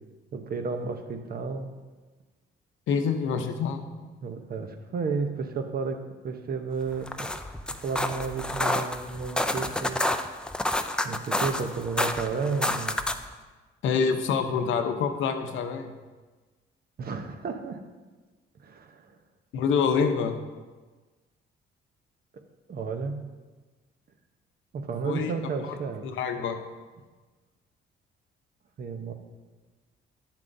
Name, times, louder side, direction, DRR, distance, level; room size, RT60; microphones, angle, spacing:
voice 1, 0.3-1.7 4.2-7.3 7.7-10.0 11.0-13.0 17.0-17.8 18.6-19.1 22.7-23.2 24.7-26.0 28.8-29.1, right 5 dB, 50° right, 6 dB, 0.8 m, -32 dB
voice 2, 2.9-3.9 13.8-15.9 19.5-20.3 25.0-25.3 26.0-26.6, left 6 dB, 75° left, 6 dB, 0.7 m, -26 dB
sound 1, 6.9-13.3, left 1 dB, 5° left, 0.4 m, -29 dB
9.3 x 7.4 x 2.6 m, 1.3 s
cardioid pair, 90°, 20 cm